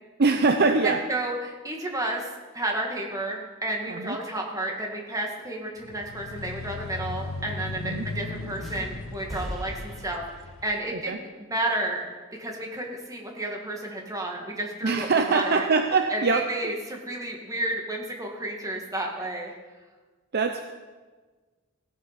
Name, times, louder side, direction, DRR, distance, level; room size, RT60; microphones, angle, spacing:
voice 1, 0.2-1.0 3.9-4.2 7.8-8.0 10.9-11.2 14.8-16.7 20.3-20.7, right 4 dB, 50° right, 6 dB, 0.6 m, -23 dB
voice 2, 0.8-2.3 2.5-10.2 10.6-12.1 12.4-15.6 16.1-19.5, right 1 dB, 15° right, 0 dB, 1.9 m, -31 dB
sound 1, 5.8-10.8, left 3 dB, 75° left, 0.7 m, -37 dB
sound 2, 8.6-10.8, equal, ahead, 2.3 m, -39 dB
15.5 x 8.2 x 5.7 m, 1.3 s
head